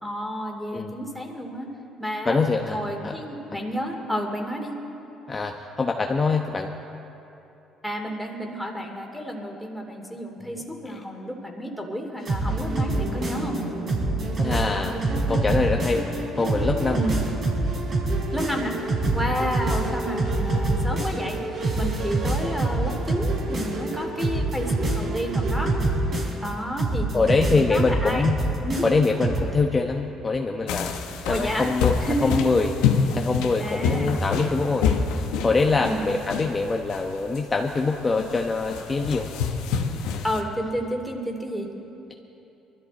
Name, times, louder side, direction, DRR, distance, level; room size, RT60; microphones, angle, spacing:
voice 1, 0.0-1.7 2.0-2.4 2.7-4.7 7.8-13.6 16.9-17.1 18.3-18.8 19.1-25.7 26.4-28.2 28.6-28.8 31.3-31.7 32.0-32.5 33.6-34.1 35.8-36.0 40.2-41.7, equal, ahead, 2 dB, 2.7 m, -30 dB
voice 2, 2.2-3.1 5.3-6.7 14.4-15.0 15.3-16.0 16.4-17.0 27.1-28.4 28.8-31.9 32.2-34.9 35.1-39.3, left 3 dB, 30° left, 2 dB, 1.0 m, -24 dB
sound 1, 12.2-13.6 13.9-16.2 16.4-21.3 21.6-23.9 24.2-26.5 26.8-29.4, right 2 dB, 45° right, 4.1 m, -25 dB
Musical instrument, 12.5-26.3, right 2 dB, 65° right, 4.2 m, -34 dB
sound 2, 30.7-40.4, left 6 dB, 85° left, 1.2 m, -27 dB
22.0 x 13.0 x 4.2 m, 3.0 s
supercardioid pair, 75°, 0 cm